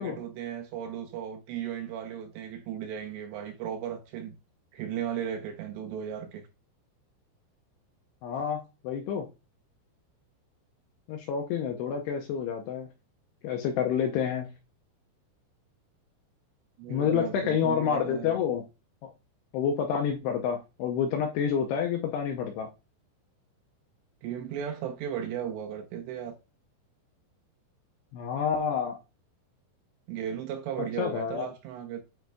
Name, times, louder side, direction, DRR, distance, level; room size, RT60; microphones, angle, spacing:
voice 1, 0.0-4.3 4.7-6.4 16.8-18.4 24.2-26.4 30.1-32.0, right 9 dB, 75° right, 2.8 m, -36 dB
voice 2, 8.2-9.3 11.1-12.9 13.4-14.5 16.9-18.6 19.0-19.1 19.5-22.7 28.1-29.0 31.0-31.5, left 7 dB, 80° left, 2.5 m, -28 dB
9.3 x 4.4 x 2.3 m
omnidirectional pair, 5.4 m